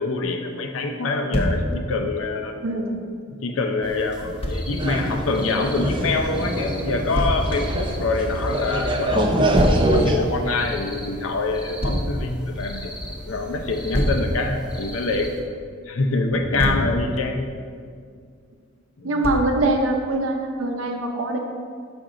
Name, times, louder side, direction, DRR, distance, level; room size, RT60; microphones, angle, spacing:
voice 1, 0.0-2.6 3.4-12.9 13.3-15.3 15.9-17.5 19.0-19.3, left 3 dB, 85° left, 5 dB, 0.6 m, -25 dB
Thump thud, 1.3-1.6 4.4-4.6 7.1-7.4 9.6-9.9 11.8-12.1 13.9-14.3 16.3-16.9 19.2-19.6, equal, 30° left, 0.7 m, -23 dB
voice 2, 2.6-3.0 16.5-16.8 19.0-21.4, right 2 dB, 80° right, 3 dB, 0.7 m, -23 dB
sound 1, 3.8-15.4, equal, 5° right, 0.8 m, -38 dB
sound 2, 4.8-10.2, right 1 dB, 25° right, 0.5 m, -24 dB
6.0 x 5.3 x 3.8 m, 2.2 s
head